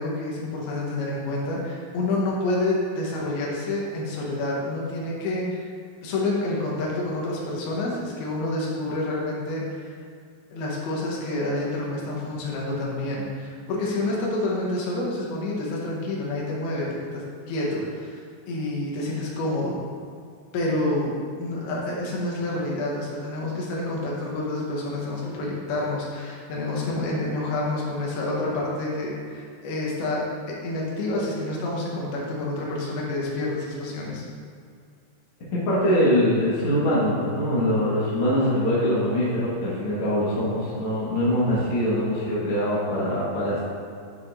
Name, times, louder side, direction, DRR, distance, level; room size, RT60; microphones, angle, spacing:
voice 1, 0.0-5.7 6.0-10.0 10.5-16.9 17.1-18.2 18.5-19.8 20.5-30.2 30.6-34.2, left 2 dB, 75° left, -4 dB, 3.0 m, -28 dB
voice 2, 35.5-43.6, equal, 50° left, -9 dB, 1.6 m, -23 dB
10.5 x 5.7 x 2.7 m, 2.2 s
omnidirectional pair, 4.6 m